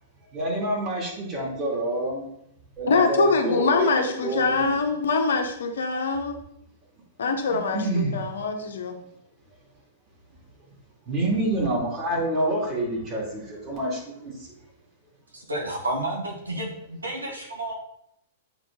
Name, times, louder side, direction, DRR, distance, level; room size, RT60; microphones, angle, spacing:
voice 1, 0.3-2.3 2.8-4.7 7.2-8.2 11.0-14.5, right 1 dB, 25° right, -3 dB, 2.5 m, -27 dB
voice 2, 2.9-6.4 7.2-9.0, left 4 dB, 65° left, 4 dB, 0.9 m, -24 dB
voice 3, 15.3-17.7, right 1 dB, 80° right, -1 dB, 1.5 m, -31 dB
7.9 x 3.8 x 3.7 m, 0.74 s
figure-of-eight pair, 105°, 0 cm